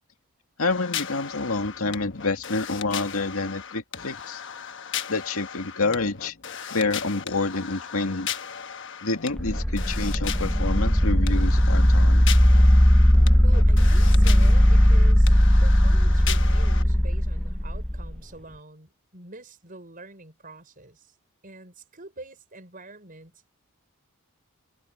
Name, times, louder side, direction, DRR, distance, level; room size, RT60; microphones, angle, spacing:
voice 1, 0.6-4.4 5.1-6.3 6.7-8.3 9.0-12.3, left 3 dB, 70° left, 2.3 m, -28 dB
sound 1, 0.7-16.8, left 8 dB, 55° left, 1.2 m, -37 dB
sound 2, 9.4-18.2, equal, 5° left, 0.5 m, -18 dB
voice 2, 13.4-15.3 15.6-21.1 21.4-23.4, right 2 dB, 40° right, 6.0 m, -45 dB
head